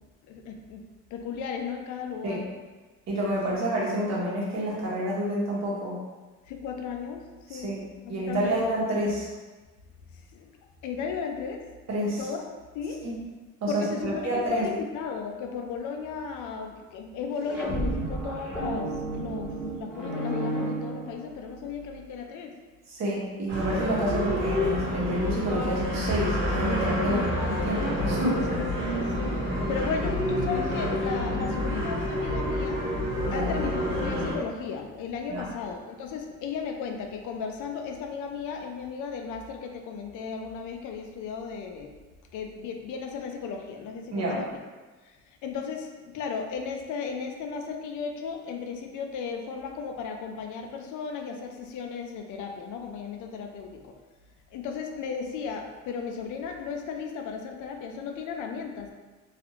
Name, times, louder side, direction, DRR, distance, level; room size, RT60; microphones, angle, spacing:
voice 1, 0.3-0.8 1.1-2.5 6.5-7.7 8.0-8.7 10.1-10.5 10.8-11.6 12.2-12.4 12.7-13.0 13.7-22.5 27.1-27.3 28.5-29.4 29.7-32.8 33.3-42.0 42.3-44.5 45.0-45.2 45.4-54.0 54.5-58.9, left 6 dB, 80° left, 4 dB, 0.4 m, -35 dB
voice 2, 3.1-6.0 7.5-7.8 8.1-9.3 11.9-12.3 13.0-13.1 13.6-14.6 22.9-28.5 33.2-33.5 35.3-35.5 44.1-44.5, right 1 dB, 60° right, -5 dB, 1.0 m, -29 dB
sound 1, 17.3-21.6, right 1 dB, ahead, 1.2 m, -32 dB
sound 2, 23.5-34.3, equal, 40° right, 1.2 m, -28 dB
2.4 x 2.4 x 2.9 m, 1.3 s
cardioid pair, 90°, 30 cm